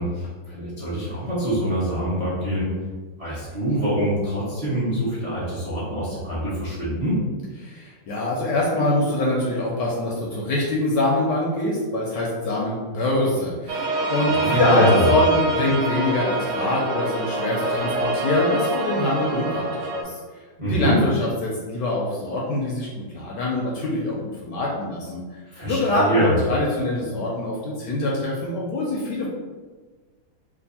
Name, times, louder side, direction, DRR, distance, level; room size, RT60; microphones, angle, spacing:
voice 1, 0.0-2.7 3.2-7.2 14.3-15.1 20.6-21.0 25.5-26.4, right 1 dB, 40° right, -8 dB, 0.5 m, -25 dB
voice 2, 7.6-20.2 20.6-24.2 24.4-25.2 25.6-29.3, left 2 dB, 70° left, -3 dB, 1.1 m, -24 dB
sound 1, 13.7-20.0, right 2 dB, 85° right, 0.8 m, -25 dB
3.4 x 2.5 x 4.0 m, 1.4 s
omnidirectional pair, 2.3 m